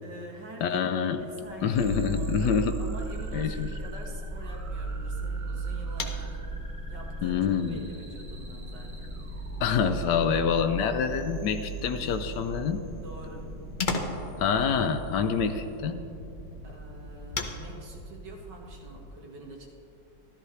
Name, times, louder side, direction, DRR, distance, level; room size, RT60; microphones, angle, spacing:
voice 1, 0.0-6.4 6.9-9.1 10.8-11.1 13.0-13.5 16.6-19.7, right 2 dB, 70° right, -1 dB, 2.1 m, -46 dB
voice 2, 0.6-1.3 1.6-2.8 3.3-3.7 7.2-7.9 9.6-12.8 14.4-16.0, left 7 dB, 75° left, 8 dB, 1.2 m, -26 dB
sound 1, 1.3-19.0, right 1 dB, 10° right, 1.1 m, -44 dB
sound 2, 1.7-15.8, right 3 dB, 35° right, 0.5 m, -37 dB
sound 3, 2.7-19.0, left 3 dB, 55° left, 0.5 m, -42 dB
13.5 x 13.0 x 3.2 m, 3.0 s
omnidirectional pair, 2.0 m